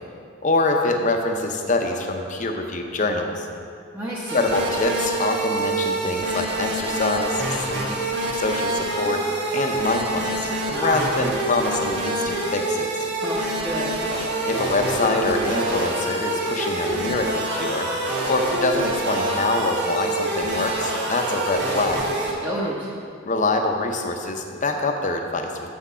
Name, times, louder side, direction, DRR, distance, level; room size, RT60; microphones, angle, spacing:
voice 1, 0.4-3.5 4.3-8.0 8.3-9.2 9.5-12.9 14.4-17.9 18.3-22.0 23.2-25.5, left 2 dB, 40° left, 4 dB, 0.7 m, -25 dB
voice 2, 3.9-4.5 10.7-11.1 13.2-14.1 22.4-23.0, equal, 10° right, -7 dB, 0.9 m, -30 dB
sound 1, 4.3-22.3, right 2 dB, 55° right, 1.4 m, -26 dB
7.3 x 6.1 x 5.5 m, 2.3 s
head